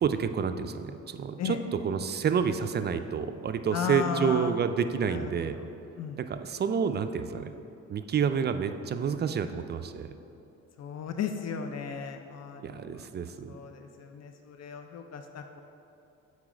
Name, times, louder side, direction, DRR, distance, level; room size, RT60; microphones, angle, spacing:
voice 1, 0.0-5.6 6.2-7.5 7.9-10.1 12.6-13.6, right 7 dB, 35° right, 9 dB, 0.4 m, -29 dB
voice 2, 3.7-4.5 5.0-5.6 6.0-6.2 10.8-13.1 13.5-15.6, left 7 dB, 60° left, 6 dB, 0.5 m, -35 dB
7.3 x 4.0 x 4.9 m, 2.8 s
cardioid pair, 90°, 30 cm